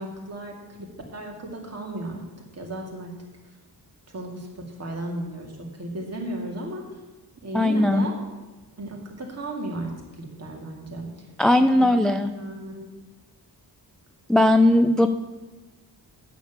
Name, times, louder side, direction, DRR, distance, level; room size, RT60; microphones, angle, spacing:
voice 1, 0.0-2.2 2.5-3.1 4.1-6.9 7.4-8.2 8.8-11.1 11.5-12.9, right 1 dB, 40° right, 0 dB, 2.3 m, -35 dB
voice 2, 7.5-8.1 11.4-12.3 14.3-15.1, left 1 dB, ahead, 8 dB, 0.3 m, -18 dB
9.3 x 7.1 x 7.4 m, 1.2 s
wide cardioid pair, 140°, 39 cm